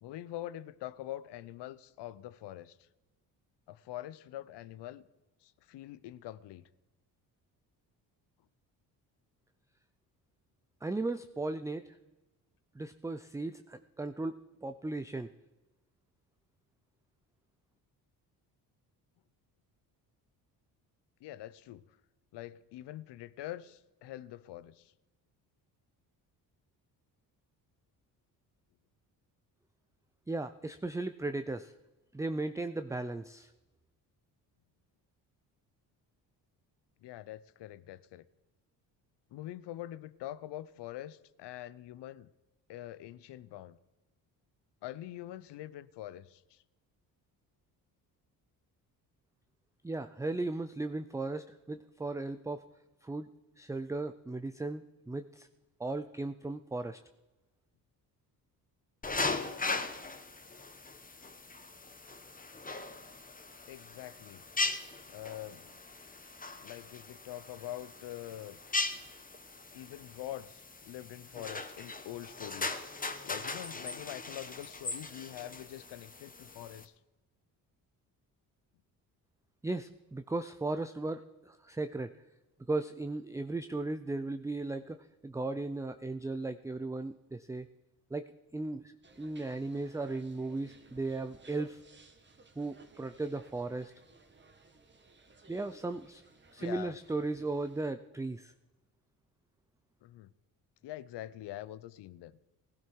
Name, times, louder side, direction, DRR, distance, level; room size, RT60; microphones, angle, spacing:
voice 1, 0.0-2.8 3.7-5.0 5.4-6.6 21.2-21.8 22.3-24.9 37.0-38.2 39.3-42.3 42.7-43.8 44.8-46.6 63.7-64.4 65.1-65.7 66.6-68.6 69.7-76.9 96.6-97.0 100.0-100.3 100.8-102.3, left 13 dB, 70° left, 0.8 m, -44 dB
voice 2, 10.8-11.9 12.8-15.3 30.3-31.7 32.1-33.5 49.8-52.6 53.0-53.3 53.6-55.5 55.8-57.0 79.6-81.2 81.5-82.1 82.7-85.0 85.2-87.7 88.1-88.3 88.5-88.8 89.2-91.8 92.6-93.9 95.5-96.2 96.5-98.5, right 2 dB, 5° right, 0.5 m, -36 dB
sound 1, 59.0-76.9, left 3 dB, 20° left, 1.2 m, -39 dB
sound 2, 89.0-97.9, right 3 dB, 25° right, 1.5 m, -59 dB
16.5 x 12.0 x 4.6 m
supercardioid pair, 60°, 44 cm